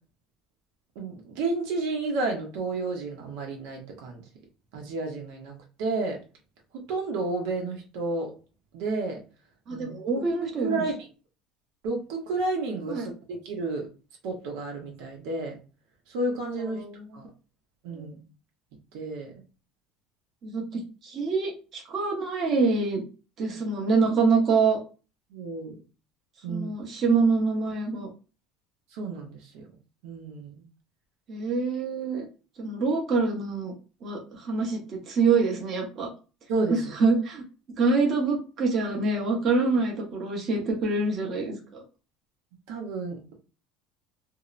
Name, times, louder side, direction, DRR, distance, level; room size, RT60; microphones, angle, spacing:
voice 1, 1.0-4.2 4.7-5.5 5.8-6.2 6.9-8.3 8.7-9.2 9.7-9.9 10.4-11.0 11.8-13.9 14.2-15.6 16.1-16.8 17.1-17.3 17.8-18.2 18.9-19.3 25.3-25.7 26.4-26.7 28.9-29.6 30.0-30.6 36.5-36.9 42.7-43.3, right 3 dB, 75° right, 0 dB, 0.7 m, -31 dB
voice 2, 9.7-10.8 12.9-13.1 16.7-17.2 17.9-18.1 20.4-20.6 21.0-23.0 23.4-24.8 26.5-28.1 31.3-32.3 32.6-33.7 34.0-36.1 36.7-37.4 37.8-41.8, right 4 dB, 40° right, -1 dB, 0.8 m, -25 dB
2.7 x 2.0 x 2.4 m, 0.33 s
cardioid pair, 140°, 0 cm